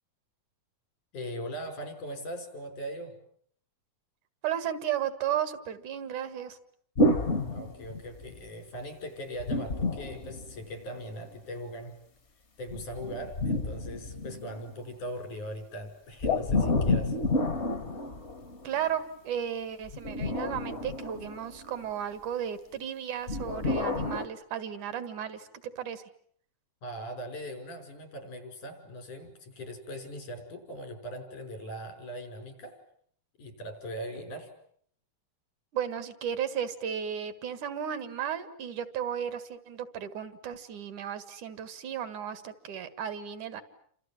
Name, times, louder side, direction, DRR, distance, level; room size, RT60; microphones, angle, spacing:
voice 1, 1.1-3.1 7.5-12.0 12.6-17.2 26.8-32.8 33.4-34.5, equal, 85° left, 7 dB, 6.8 m, -40 dB
voice 2, 4.4-6.6 18.6-26.0 35.7-43.6, right 9 dB, 80° right, 13 dB, 3.3 m, -34 dB
sound 1, 7.0-8.4 9.4-11.0 12.7-14.7 16.2-18.8 19.9-21.8 23.3-24.3, left 2 dB, 40° left, 1.0 m, -29 dB
29.5 x 26.0 x 7.5 m, 0.64 s
omnidirectional pair, 3.4 m